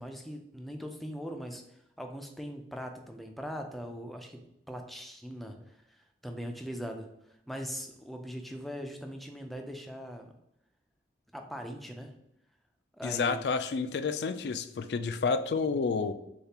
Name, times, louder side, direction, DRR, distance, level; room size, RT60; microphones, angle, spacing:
voice 1, 0.0-4.4 4.7-6.0 6.2-7.1 7.5-10.3 11.3-12.1 13.0-13.4, equal, ahead, 3 dB, 0.4 m, -40 dB
voice 2, 13.0-16.1, left 4 dB, 65° left, 10 dB, 0.4 m, -30 dB
6.7 x 2.4 x 2.9 m, 0.80 s
head